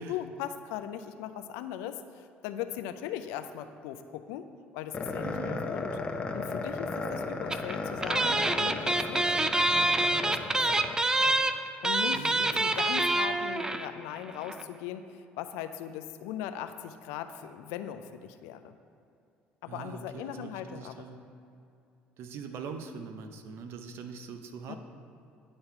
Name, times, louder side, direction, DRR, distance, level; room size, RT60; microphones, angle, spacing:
voice 1, 0.0-5.9 6.3-9.4 9.8-10.8 11.8-18.7 19.6-20.9 24.7-24.8, left 10 dB, 85° left, 9 dB, 0.4 m, -39 dB
sound 1, 4.9-11.4, left 3 dB, 25° left, 0.7 m, -35 dB
voice 2, 5.2-5.6 12.1-13.1 19.6-21.2 22.2-24.8, right 5 dB, 65° right, 7 dB, 0.7 m, -42 dB
sound 2, 7.5-7.7 8.0-13.9 14.2-14.3 14.4-14.6, right 2 dB, 15° right, 0.4 m, -26 dB
9.8 x 4.0 x 4.5 m, 2.6 s
supercardioid pair, 80°, 4 cm